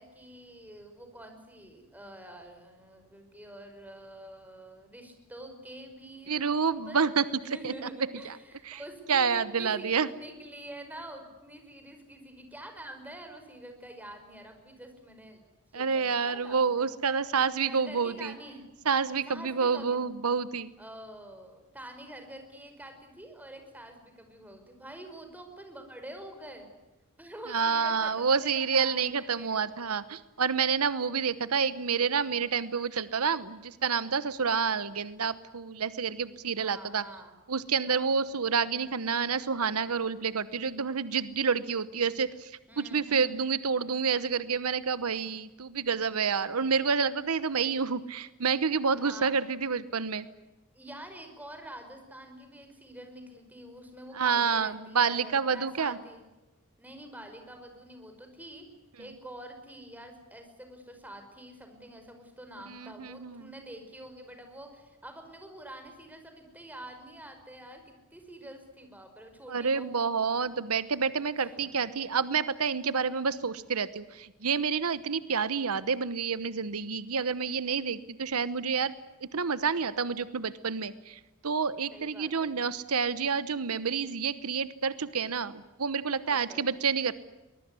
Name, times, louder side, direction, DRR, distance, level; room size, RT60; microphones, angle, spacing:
voice 1, 0.0-7.1 7.4-15.4 15.7-16.9 17.6-18.6 19.3-20.0 20.8-26.7 27.2-29.7 36.6-37.4 37.9-38.1 42.7-43.3 49.0-49.3 50.7-56.3 56.8-58.7 59.0-70.2 71.4-71.6 81.9-82.6 86.2-86.7, right 1 dB, 10° right, 6 dB, 5.5 m, -47 dB
voice 2, 6.3-7.2 7.6-7.7 8.2-8.3 8.7-8.8 9.1-10.1 15.7-18.3 18.9-20.8 27.5-37.0 37.5-42.5 42.8-50.3 54.1-56.0 62.7-63.4 69.5-78.9 79.3-87.1, right 5 dB, 85° right, 15 dB, 1.0 m, -28 dB
23.5 x 21.0 x 9.7 m, 1.1 s
head